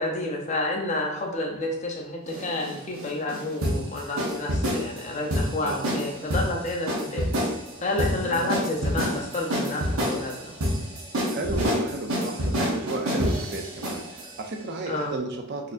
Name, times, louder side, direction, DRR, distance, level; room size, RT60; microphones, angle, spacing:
voice 1, 0.0-7.3 7.8-10.5 14.9-15.1, left 2 dB, 30° left, 1 dB, 0.5 m, -30 dB
sound 1, 2.3-14.3, equal, 70° right, 0.8 m, -28 dB
voice 2, 8.2-8.6 11.3-15.7, right 2 dB, 45° right, 3 dB, 0.4 m, -33 dB
4.2 x 2.7 x 2.5 m, 0.92 s
head